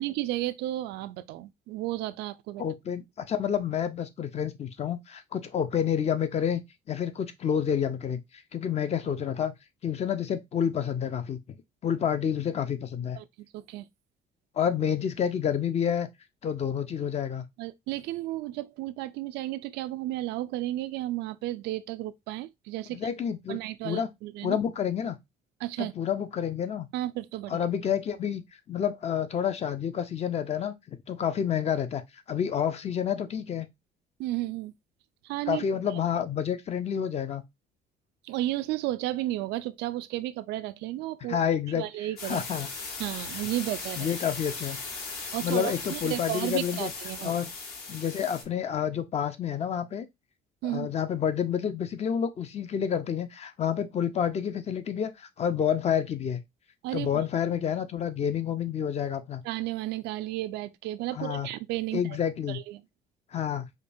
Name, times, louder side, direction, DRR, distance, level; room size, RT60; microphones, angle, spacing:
voice 1, 0.0-2.6 13.2-13.3 13.5-13.8 17.6-23.1 23.5-24.6 25.6-25.9 26.9-27.6 34.2-34.7 35.2-35.6 38.2-41.4 41.8-42.4 43.0-44.1 45.3-47.3 50.6-50.9 56.8-57.1 59.4-62.2 62.5-62.8, right 15 dB, 85° right, 0.4 m, -33 dB
voice 2, 2.6-6.6 6.9-8.2 8.5-9.5 9.8-11.4 11.8-13.2 14.6-16.1 16.4-17.4 22.9-24.1 24.4-25.2 25.8-26.9 27.5-28.4 28.7-32.0 32.3-33.7 35.5-37.4 41.3-41.8 42.2-42.7 44.0-44.8 45.2-46.9 47.2-47.5 47.9-50.1 50.6-56.4 56.9-59.4 61.1-61.5 61.9-62.6 63.3-63.7, left 8 dB, 40° left, 0.6 m, -29 dB
sound 1, 42.2-48.4, left 4 dB, 65° left, 1.4 m, -38 dB
5.1 x 2.3 x 2.6 m
cardioid pair, 110°, 17 cm